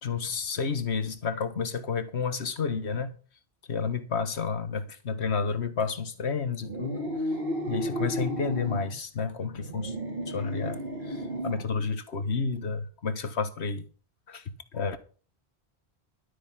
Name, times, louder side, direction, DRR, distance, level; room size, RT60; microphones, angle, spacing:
voice 1, 0.0-3.1 3.7-7.0 7.7-9.9 10.3-13.8 14.3-14.4 14.7-15.0, left 5 dB, 75° left, 1.6 m, -30 dB
sound 1, 6.6-8.9 9.5-11.7, equal, 55° right, 3.2 m, -33 dB
12.5 x 8.5 x 5.8 m
omnidirectional pair, 1.1 m